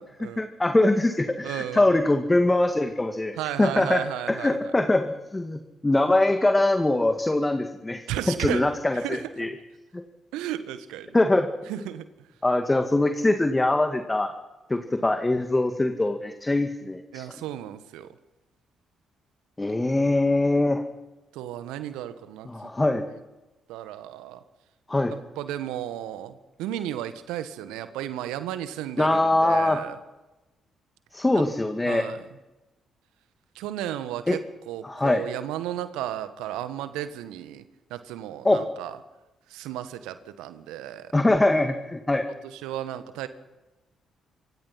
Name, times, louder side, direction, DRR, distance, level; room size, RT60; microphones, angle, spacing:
voice 1, 0.2-9.5 9.9-10.0 11.1-11.5 12.4-14.3 14.7-17.2 19.6-20.8 22.5-23.1 24.9-25.1 29.0-29.8 31.1-32.1 34.3-34.4 34.8-35.2 38.4-38.6 41.1-42.3, left 2 dB, 20° left, 6 dB, 2.1 m, -23 dB
voice 2, 1.4-2.0 3.4-4.6 8.1-9.3 10.3-11.1 11.7-12.0 17.1-18.1 21.3-22.7 23.1-23.2 23.7-24.4 25.4-30.0 31.3-31.4 31.8-32.2 33.5-34.4 34.7-37.6 37.9-39.0 39.5-41.1 42.4-43.3, right 12 dB, 75° right, 11 dB, 1.5 m, -34 dB
26.0 x 26.0 x 5.9 m, 1.1 s
hypercardioid pair, 40°, 0 cm